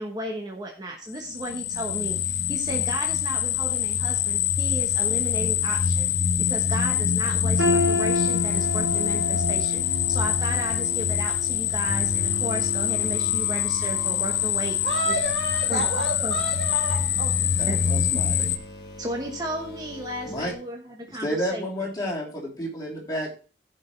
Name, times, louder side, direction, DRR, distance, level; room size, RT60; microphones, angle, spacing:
voice 1, 0.0-6.1 6.5-14.8 15.1-15.2 15.7-15.9 16.2-16.4 17.7-17.8 18.1-18.2 19.0-21.7, right 1 dB, 20° right, 0 dB, 1.1 m, -34 dB
sound 1, 1.2-18.6, left 9 dB, 80° left, 0.8 m, -25 dB
sound 2, 7.6-13.5 13.9-14.2 14.9-15.0, left 2 dB, 90° right, 2.2 m, -31 dB
sound 3, 11.9-20.5, left 1 dB, 60° left, 1.4 m, -38 dB
voice 2, 14.8-17.5, right 2 dB, 60° right, -1 dB, 1.5 m, -30 dB
voice 3, 17.6-18.4 20.3-20.5 21.2-23.3, equal, 20° left, -3 dB, 3.2 m, -31 dB
15.5 x 5.4 x 3.2 m, 0.36 s
head